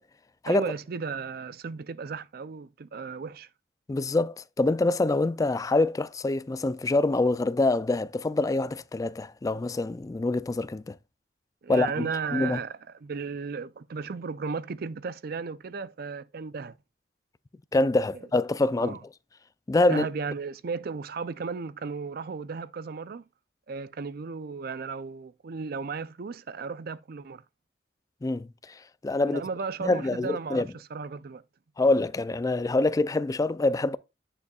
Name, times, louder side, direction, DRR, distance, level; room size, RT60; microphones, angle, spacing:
voice 1, 0.5-3.5 11.6-16.8 18.8-19.0 19.9-23.3 23.7-27.4 29.3-30.6 30.9-31.4, right 5 dB, 55° right, 0.5 m, -35 dB
voice 2, 3.9-11.0 11.7-12.6 17.7-19.0 19.7-20.1 28.2-29.4 29.8-30.7 31.8-34.0, left 2 dB, 20° left, 0.3 m, -25 dB
9.6 x 6.7 x 2.3 m
head